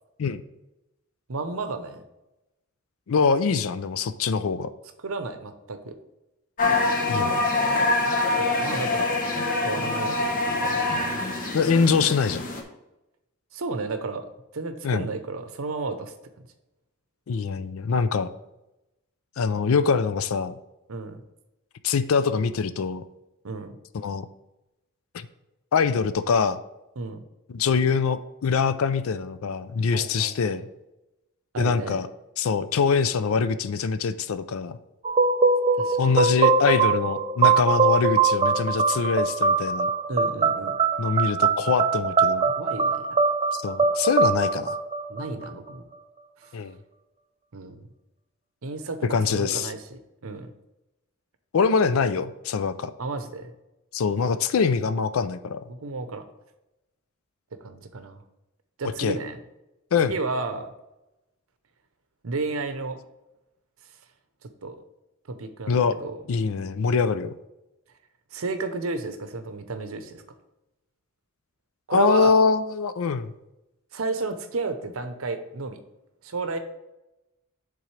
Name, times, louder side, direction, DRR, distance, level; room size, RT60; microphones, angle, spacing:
voice 1, 1.3-2.0 5.0-5.9 8.4-9.3 9.6-11.2 13.5-14.3 14.5-16.1 20.9-21.2 23.4-23.7 27.0-27.2 29.9-30.6 31.5-32.0 35.7-36.2 40.1-40.8 42.4-43.1 45.1-45.8 46.4-46.5 47.5-47.8 48.6-50.5 53.0-53.5 55.7-56.2 57.6-58.2 58.8-59.4 60.0-60.7 62.2-63.0 64.4-64.8 65.3-66.2 68.3-70.2 71.9-72.4 73.9-75.8 76.2-76.6, right 3 dB, 70° right, 9 dB, 0.7 m, -32 dB
voice 2, 3.1-4.7 7.1-7.5 11.5-12.4 14.8-15.1 17.3-18.3 19.4-20.5 21.8-23.0 23.9-24.3 25.1-25.3 25.7-26.6 27.5-30.7 31.6-32.1 32.4-34.8 36.0-39.9 41.0-42.5 43.5-44.8 46.5-46.7 49.1-49.7 51.5-52.9 53.9-55.6 59.0-59.2 59.9-60.1 65.7-66.0 66.3-67.3 71.9-73.3, left 5 dB, 70° left, 13 dB, 0.4 m, -24 dB
sound 1, 6.6-12.6, left 2 dB, 40° left, 0.8 m, -25 dB
sound 2, 35.0-45.7, right 4 dB, 25° right, 0.5 m, -22 dB
10.0 x 3.8 x 3.2 m, 0.95 s
head